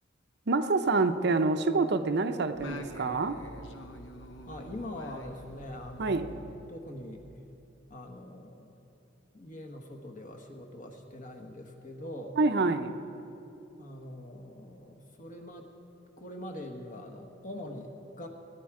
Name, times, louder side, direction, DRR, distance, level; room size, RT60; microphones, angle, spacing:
voice 1, 0.5-3.4 6.0-6.3 12.4-12.9, right 3 dB, 60° right, 8 dB, 0.6 m, -26 dB
Singing, 2.5-7.3, left 1 dB, 75° left, 1.0 m, -47 dB
voice 2, 4.5-6.4 6.7-7.3 7.9-8.7 9.3-12.4 13.8-15.7 16.2-18.3, left 1 dB, 45° left, 3 dB, 1.3 m, -43 dB
19.0 x 10.0 x 4.8 m, 2.9 s
head